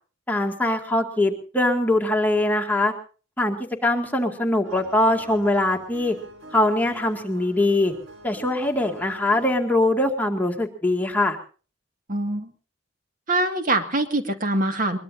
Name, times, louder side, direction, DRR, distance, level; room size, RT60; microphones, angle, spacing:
voice 1, 0.3-2.9 3.4-3.6 3.8-6.2 6.5-7.9 8.2-11.4, left 1 dB, 10° left, 1 dB, 2.1 m, -22 dB
sound 1, 4.6-9.6, right 2 dB, 75° right, 5.4 m, -45 dB
voice 2, 12.1-12.5 13.3-15.0, right 2 dB, 45° right, 6 dB, 2.0 m, -23 dB
22.0 x 22.0 x 2.7 m, 0.37 s
head